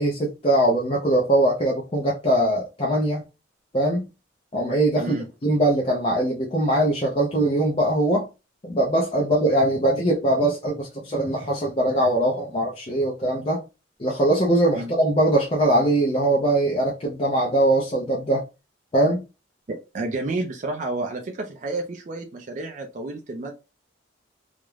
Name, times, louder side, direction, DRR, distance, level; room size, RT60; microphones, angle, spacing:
voice 1, 0.0-3.2 3.7-4.1 4.5-8.3 8.6-13.6 14.0-18.4 18.9-19.2, right 1 dB, 30° left, 0.5 m, -21 dB
voice 2, 19.7-23.5, right 2 dB, 40° right, 0.4 m, -30 dB
2.4 x 2.0 x 3.1 m
head